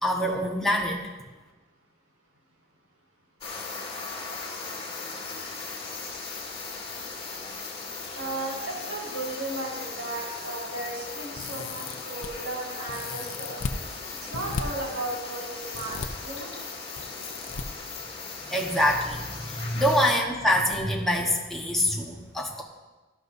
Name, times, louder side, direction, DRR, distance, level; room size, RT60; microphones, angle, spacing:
voice 1, 0.0-1.0 18.5-22.6, left 1 dB, ahead, -2 dB, 1.1 m, -25 dB
sound 1, 3.4-20.1, left 4 dB, 30° left, 1.9 m, -38 dB
voice 2, 8.1-13.6 14.2-16.6, right 2 dB, 80° right, -3 dB, 4.7 m, -35 dB
sound 2, 11.4-12.3 12.9-13.8 14.3-14.6 15.7-16.1 17.0-17.6 18.8-19.2 19.4-19.5 20.7-20.8 21.2-21.3, left 4 dB, 65° left, 0.6 m, -35 dB
17.5 x 12.0 x 2.7 m, 1.2 s
head